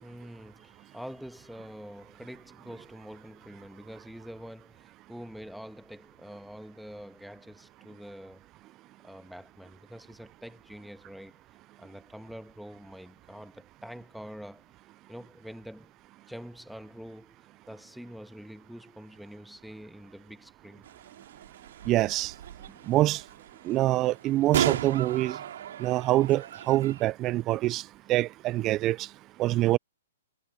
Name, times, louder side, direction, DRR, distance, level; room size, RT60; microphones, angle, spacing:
voice 1, 0.0-8.5 9.0-11.4 11.8-14.7 15.1-15.9 16.3-20.9 22.6-22.9, equal, ahead, 1.5 m, -46 dB
sound 1, 20.8-27.0, right 10 dB, 65° right, 2.6 m, -35 dB
voice 2, 21.9-22.3 22.9-23.2 23.6-25.4 25.8-29.1 29.4-29.8, right 16 dB, 30° right, 0.4 m, -25 dB
hypercardioid pair, 140°, 0 cm